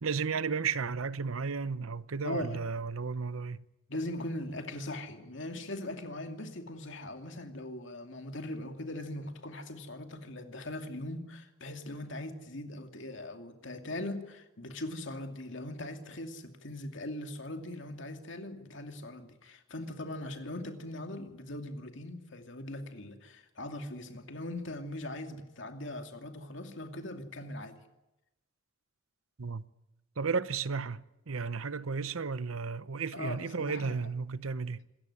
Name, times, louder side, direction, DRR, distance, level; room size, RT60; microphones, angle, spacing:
voice 1, 0.0-3.6 29.4-29.6 30.2-34.8, right 5 dB, 85° right, 0.8 m, -33 dB
voice 2, 2.2-2.6 3.9-27.8 33.1-34.1, left 1 dB, 65° left, 2.6 m, -40 dB
26.5 x 13.5 x 9.9 m
head